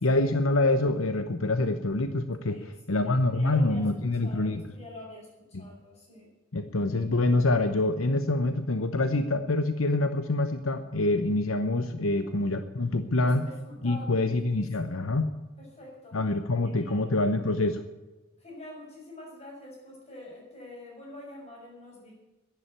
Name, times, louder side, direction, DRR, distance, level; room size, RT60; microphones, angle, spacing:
voice 1, 0.0-4.6 6.5-13.4 13.8-15.3 16.1-17.8, left 2 dB, 85° left, 9 dB, 0.9 m, -26 dB
voice 2, 2.5-3.9 4.2-6.3 12.1-12.3 13.2-14.3 14.8-15.0 15.6-16.2 16.7-17.1 18.4-22.1, left 1 dB, 30° left, -2 dB, 6.6 m, -46 dB
11.0 x 11.0 x 9.9 m, 1.1 s
head